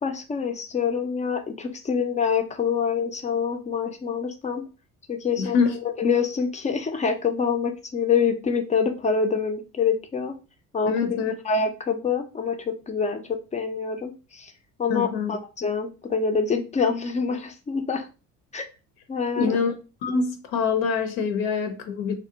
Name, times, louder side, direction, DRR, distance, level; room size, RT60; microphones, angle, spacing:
voice 1, 0.0-4.6 5.1-5.6 5.8-10.4 10.7-13.2 13.5-14.5 14.8-18.1 18.5-18.7 19.1-19.6, left 5 dB, 20° left, 0.3 m, -26 dB
voice 2, 5.4-5.7 10.9-11.3 14.9-15.3 19.4-19.7 20.0-22.1, left 5 dB, 65° left, 0.6 m, -24 dB
2.5 x 2.1 x 2.7 m
hypercardioid pair, 60°, 41 cm